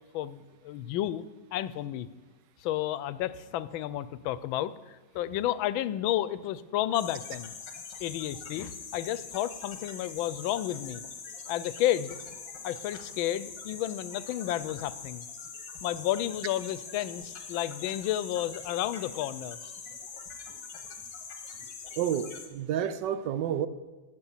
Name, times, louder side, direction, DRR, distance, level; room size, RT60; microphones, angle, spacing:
voice 1, 0.0-2.1 2.6-7.5 8.0-11.0 11.5-12.2 12.6-15.3 15.8-19.6, left 12 dB, 90° left, 16 dB, 1.4 m, -31 dB
sound 1, 6.9-22.5, left 5 dB, 65° left, 2.0 m, -43 dB
voice 2, 22.0-23.7, right 9 dB, 70° right, 13 dB, 1.2 m, -30 dB
11.5 x 8.3 x 7.2 m, 1.2 s
omnidirectional pair, 2.1 m